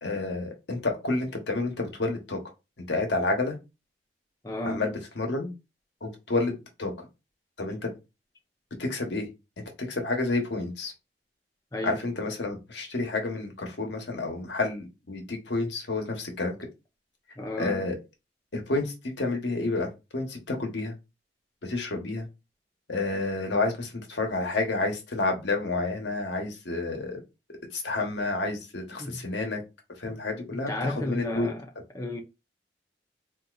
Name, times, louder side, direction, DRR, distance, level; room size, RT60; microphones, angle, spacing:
voice 1, 0.0-2.4 2.9-3.6 4.6-5.5 6.0-7.1 7.6-7.9 8.8-9.3 9.6-10.9 11.8-16.6 17.6-17.9 18.5-20.9 21.6-22.3 22.9-27.2 27.7-29.6 30.0-31.5, left 2 dB, 80° left, 1.0 m, -30 dB
voice 2, 4.4-4.9 11.7-12.0 17.4-17.9 29.0-29.2 30.7-31.6 31.9-32.2, left 1 dB, 20° left, 0.6 m, -32 dB
4.0 x 2.7 x 2.4 m
head